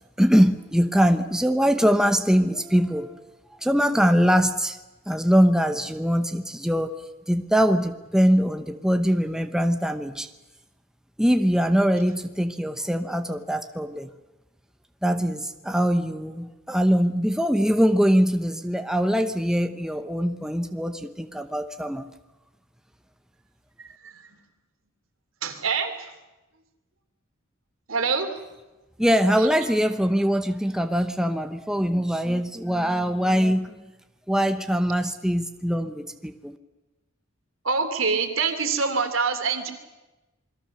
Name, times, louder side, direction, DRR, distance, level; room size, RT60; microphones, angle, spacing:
voice 1, 0.2-3.2 3.6-4.8 5.1-6.9 7.3-10.3 11.2-14.1 15.0-22.1 29.0-33.9 34.3-36.6, equal, 5° right, 7 dB, 0.9 m, -22 dB
voice 2, 23.8-24.2 25.4-25.9 27.9-28.4 37.6-39.7, right 5 dB, 75° right, 6 dB, 3.0 m, -25 dB
27.0 x 22.0 x 6.6 m, 1.1 s
head